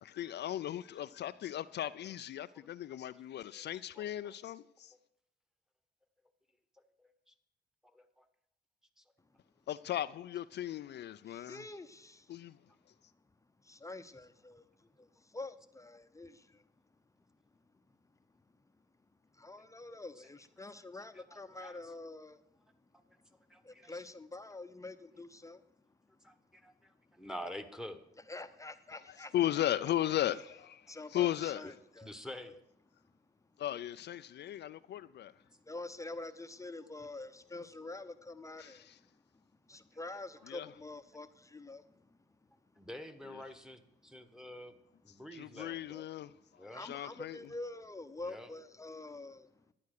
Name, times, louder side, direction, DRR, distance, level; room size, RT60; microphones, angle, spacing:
voice 1, 0.0-4.9 9.7-11.7 12.3-12.6 28.9-31.7 33.6-35.3 38.6-39.0 40.5-40.7 43.3-43.4 45.3-47.5, left 12 dB, 60° left, 0.4 m, -37 dB
voice 2, 4.0-4.3 7.0-7.3 7.9-8.2 9.0-9.1 20.2-20.3 21.1-21.8 23.5-24.0 26.2-28.0 31.6-31.7 32.0-32.6 41.7-41.8 42.8-46.0 46.6-46.8 48.2-48.5, equal, 5° right, 1.2 m, -48 dB
voice 3, 11.3-12.3 13.6-16.6 19.3-22.4 23.6-25.6 28.3-29.3 30.9-32.6 35.5-39.1 39.7-42.2 46.7-49.5, left 2 dB, 15° left, 0.7 m, -47 dB
11.5 x 9.4 x 6.5 m
cardioid pair, 90°, 20 cm